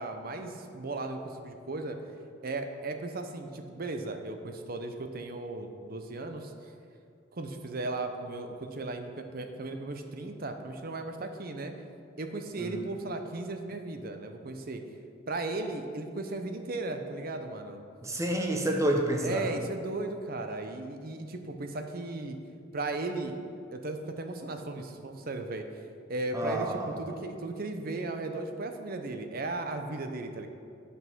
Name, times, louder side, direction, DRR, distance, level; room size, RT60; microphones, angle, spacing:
voice 1, 0.0-2.0 2.4-6.5 7.3-11.7 12.2-14.8 15.3-17.8 19.2-22.4 22.7-23.3 23.7-25.7 26.1-30.5, right 2 dB, 50° right, 6 dB, 0.7 m, -36 dB
voice 2, 18.0-19.5 26.3-27.0, right 1 dB, 15° right, 2 dB, 0.9 m, -29 dB
8.6 x 5.6 x 6.1 m, 2.4 s
head